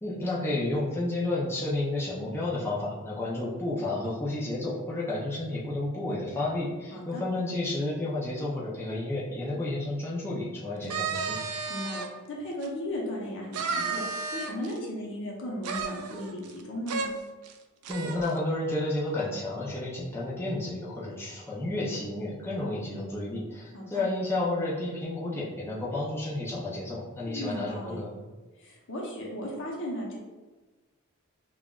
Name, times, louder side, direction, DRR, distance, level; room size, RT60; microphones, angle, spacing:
voice 1, 0.0-11.4 17.9-28.1, left 2 dB, 10° left, -7 dB, 0.6 m, -31 dB
voice 2, 6.9-7.2 11.7-12.0 12.3-17.1 23.7-24.0 27.3-28.0 28.6-30.2, equal, 60° left, -2 dB, 0.9 m, -36 dB
sound 1, 10.8-12.1 12.6-12.7 13.5-14.8 15.6-16.6 16.9-17.1 17.4-17.5 17.8-18.3, right 5 dB, 90° right, 0.4 m, -33 dB
5.5 x 2.4 x 2.4 m, 1.2 s
head